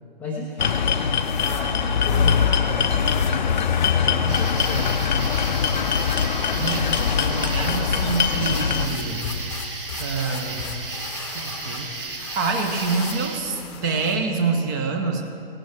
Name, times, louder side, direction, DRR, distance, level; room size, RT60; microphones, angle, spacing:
voice 1, 0.2-0.8 1.3-5.0, left 1 dB, 5° left, -6 dB, 0.6 m, -34 dB
sound 1, 0.6-8.9, left 7 dB, 50° left, 0.7 m, -22 dB
sound 2, 0.6-14.4, left 6 dB, 30° left, 0.9 m, -40 dB
sound 3, 4.3-13.4, right 3 dB, 65° right, 2.1 m, -34 dB
voice 2, 6.5-9.3 10.0-10.7 11.2-15.2, right 4 dB, 20° right, 4 dB, 0.9 m, -27 dB
17.5 x 11.5 x 3.4 m, 2.5 s
figure-of-eight pair, 130°, 30 cm